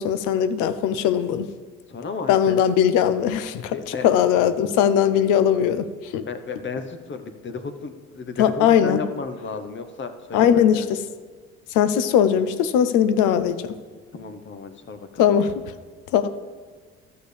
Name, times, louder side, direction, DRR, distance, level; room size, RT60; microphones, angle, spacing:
voice 1, 0.0-1.5 2.3-3.8 4.0-6.2 8.4-9.0 10.3-11.0 11.7-13.8 15.2-15.5 16.1-16.3, left 9 dB, 80° left, 12 dB, 0.7 m, -19 dB
voice 2, 1.9-2.6 3.7-4.1 6.3-10.9 14.1-15.3, left 4 dB, 40° left, 8 dB, 1.0 m, -33 dB
12.5 x 6.8 x 3.4 m, 1.5 s
supercardioid pair, 75°, 31 cm